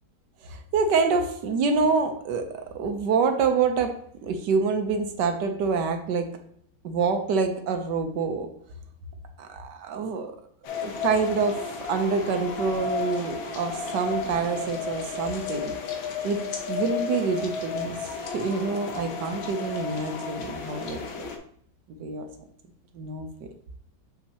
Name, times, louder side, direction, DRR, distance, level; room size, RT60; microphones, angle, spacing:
voice 1, 0.4-6.3 6.8-8.5 9.4-10.2 10.8-15.7 16.2-16.4 16.7-18.0 18.2-21.3 21.9-22.3 22.9-23.5, right 4 dB, 65° right, 6 dB, 1.3 m, -26 dB
sound 1, 10.6-21.4, left 5 dB, 80° left, 1.7 m, -33 dB
6.8 x 5.7 x 2.8 m, 0.64 s
omnidirectional pair, 2.1 m